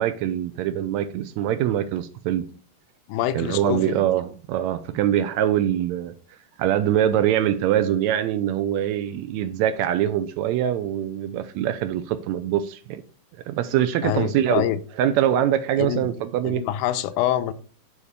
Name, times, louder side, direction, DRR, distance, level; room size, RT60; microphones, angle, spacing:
voice 1, 0.0-2.5 3.3-6.1 6.6-13.0 13.5-14.7 15.0-16.6, right 11 dB, 85° right, 1.6 m, -23 dB
voice 2, 3.1-4.1 14.0-14.8 15.8-16.1 16.4-17.5, left 11 dB, 80° left, 2.0 m, -25 dB
7.0 x 4.3 x 6.7 m
omnidirectional pair, 3.8 m